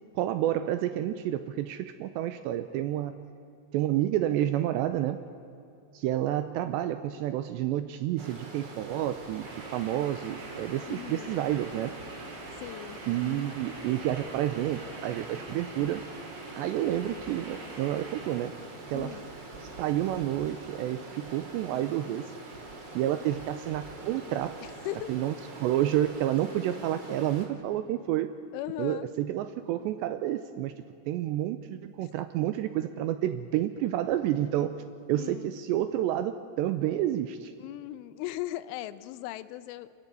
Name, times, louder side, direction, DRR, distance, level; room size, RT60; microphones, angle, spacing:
voice 1, 0.2-3.2 3.7-5.2 5.9-11.9 13.1-16.1 16.6-18.6 18.9-19.2 19.6-22.2 22.9-24.6 25.1-25.3 25.6-28.3 28.8-34.8 35.1-37.5, right 12 dB, 80° right, 10 dB, 2.6 m, -29 dB
Stream, 8.2-27.5, right 2 dB, 30° right, 2.4 m, -44 dB
sound 1, 9.4-18.5, right 2 dB, 60° right, 6.7 m, -46 dB
voice 2, 10.9-11.3 12.6-13.0 18.9-19.3 24.9-25.1 28.5-29.1 35.1-35.6 37.6-39.9, left 14 dB, 80° left, 15 dB, 3.1 m, -38 dB
28.5 x 14.0 x 9.7 m, 2.6 s
omnidirectional pair, 5.7 m